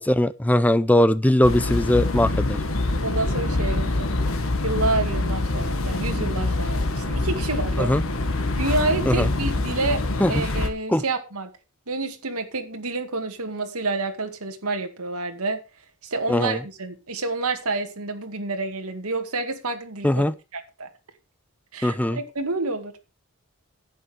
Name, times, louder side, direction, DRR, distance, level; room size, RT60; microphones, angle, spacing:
voice 1, 0.0-2.6 7.8-8.0 9.1-9.3 10.2-10.4 10.9-11.0 16.3-16.6 20.0-20.3 21.8-22.2, left 1 dB, 5° left, 0.5 m, -20 dB
sound 1, 1.4-10.7, left 2 dB, 65° left, 1.6 m, -25 dB
voice 2, 3.0-4.1 4.6-7.9 8.5-11.5 11.9-15.6 16.0-20.9 21.7-23.0, right 3 dB, 80° right, 2.1 m, -28 dB
11.0 x 8.3 x 5.0 m
head